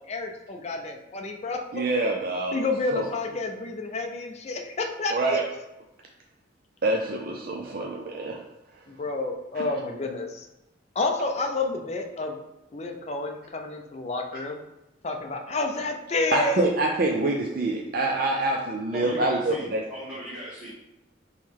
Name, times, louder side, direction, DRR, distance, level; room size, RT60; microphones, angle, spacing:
voice 1, 0.0-1.6 2.5-5.4 8.9-10.5 10.9-12.4 12.7-14.6 15.0-16.6, left 3 dB, 35° left, 3 dB, 0.5 m, -29 dB
voice 2, 1.7-2.6 2.9-3.1 5.1-5.5 6.8-9.0 9.5-9.8 16.3-19.8, right 2 dB, 50° right, 1 dB, 0.4 m, -26 dB
voice 3, 18.9-20.7, right 1 dB, 10° right, -11 dB, 1.2 m, -37 dB
4.5 x 3.1 x 3.6 m, 0.94 s
head